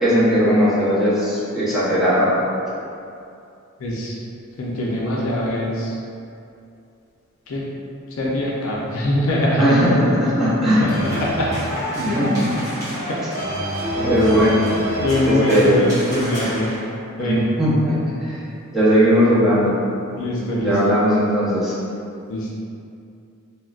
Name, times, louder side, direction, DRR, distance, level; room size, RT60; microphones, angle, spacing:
voice 1, 0.0-2.3 9.6-10.9 11.9-12.5 14.0-14.6 15.3-15.8 17.2-18.4 18.7-19.7 20.6-21.7, equal, ahead, -12 dB, 0.7 m, -18 dB
voice 2, 3.8-4.2 4.6-5.9 7.5-7.6 8.2-9.7 10.8-11.5 12.0-12.2 12.5-12.6 13.1-13.2 15.0-16.7 17.2-17.4 20.2-20.7 22.3-22.5, left 1 dB, 65° left, -4 dB, 0.5 m, -23 dB
sound 1, 10.9-16.8, equal, 15° right, 1.0 m, -28 dB
3.6 x 2.1 x 2.3 m, 2.6 s
head